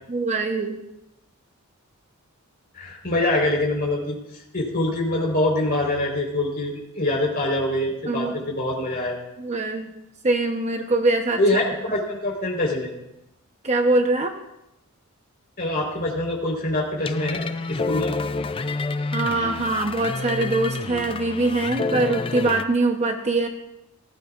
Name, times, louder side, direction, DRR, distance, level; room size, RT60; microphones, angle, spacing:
voice 1, 0.1-0.8 8.1-8.4 9.4-9.9 10.2-11.4 13.6-14.3 19.1-23.5, right 2 dB, 30° right, 4 dB, 0.9 m, -23 dB
voice 2, 2.7-4.2 4.5-9.1 11.4-12.9 15.6-18.2, left 1 dB, 45° left, -1 dB, 4.3 m, -24 dB
sound 1, 17.1-22.6, left 3 dB, 25° left, 0.4 m, -28 dB
18.5 x 15.0 x 2.5 m, 0.87 s
head